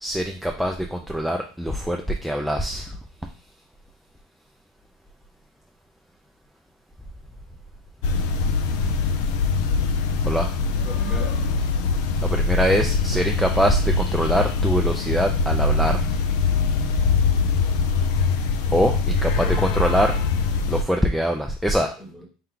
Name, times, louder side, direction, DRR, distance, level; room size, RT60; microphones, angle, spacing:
voice 1, 0.0-3.0 10.2-10.5 12.0-16.0 18.7-20.2 20.7-21.9, equal, ahead, 2 dB, 0.4 m, -23 dB
sound 1, 8.0-20.8, left 4 dB, 70° left, 0.5 m, -22 dB
voice 2, 10.5-11.4 13.1-13.2 19.4-20.0 22.0-22.3, left 1 dB, 15° left, 3 dB, 1.1 m, -38 dB
4.4 x 2.2 x 3.8 m, 0.36 s
supercardioid pair, 110°, 0 cm